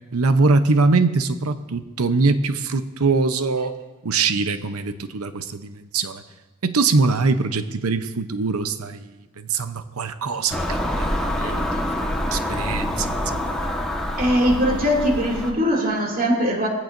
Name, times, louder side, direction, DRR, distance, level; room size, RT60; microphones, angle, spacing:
voice 1, 0.1-3.7 4.0-6.2 6.6-9.1 9.4-11.8 12.3-13.5, right 3 dB, 80° right, 10 dB, 0.8 m, -22 dB
Car passing by / Engine, 10.5-15.5, left 1 dB, 5° left, 1.3 m, -26 dB
voice 2, 14.2-16.7, equal, 40° right, -1 dB, 2.6 m, -20 dB
21.5 x 15.5 x 2.6 m, 1.2 s
head